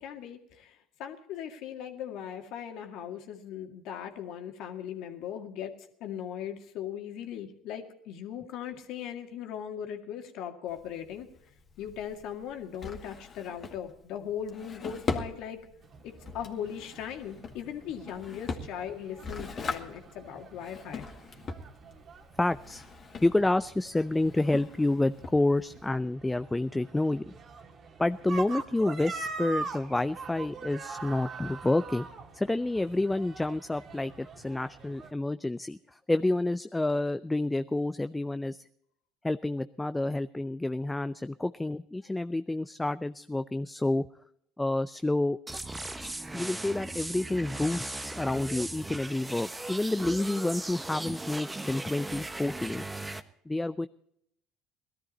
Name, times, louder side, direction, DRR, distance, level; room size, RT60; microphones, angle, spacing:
voice 1, 0.0-5.7 6.0-11.3 11.8-15.6 16.0-21.1, left 9 dB, 60° left, 4 dB, 2.0 m, -39 dB
Drawer open or close, 10.7-25.9, left 4 dB, 40° left, 2.0 m, -41 dB
sound 1, 15.8-35.1, right 4 dB, 45° right, 1.9 m, -44 dB
voice 2, 22.4-22.8 23.2-27.3 28.0-32.1 32.3-38.6 39.2-44.1 44.6-45.4 46.0-52.8 53.5-53.9, left 2 dB, 10° left, 12 dB, 0.5 m, -29 dB
sound 2, 45.5-53.2, right 2 dB, 15° right, 1.1 m, -38 dB
18.5 x 13.0 x 4.2 m, 0.71 s
hypercardioid pair, 70°, 0 cm